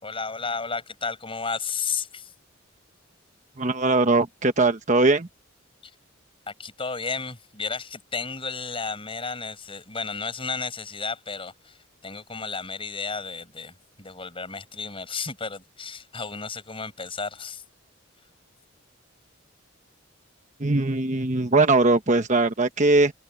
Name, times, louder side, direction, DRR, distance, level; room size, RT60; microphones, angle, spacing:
voice 1, 0.0-2.3 5.8-5.9 6.5-17.6, left 4 dB, 25° left, 6.2 m, -33 dB
voice 2, 3.6-5.3 20.6-23.1, right 3 dB, 35° right, 1.1 m, -20 dB
open air
head